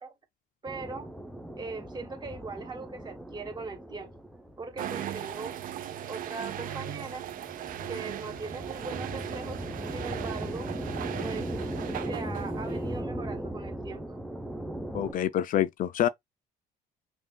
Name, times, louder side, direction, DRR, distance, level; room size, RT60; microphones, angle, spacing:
voice 1, 0.6-1.1 1.6-4.1 4.6-5.6 6.1-7.3 7.9-10.7 11.2-11.5 12.0-14.2, right 4 dB, 25° right, 1.1 m, -40 dB
sound 1, 0.7-15.1, right 1 dB, ahead, 0.7 m, -38 dB
sound 2, 4.8-13.0, right 10 dB, 55° right, 0.6 m, -38 dB
voice 2, 14.9-16.1, left 11 dB, 55° left, 0.4 m, -26 dB
5.6 x 2.4 x 2.2 m
cardioid pair, 110°, 17 cm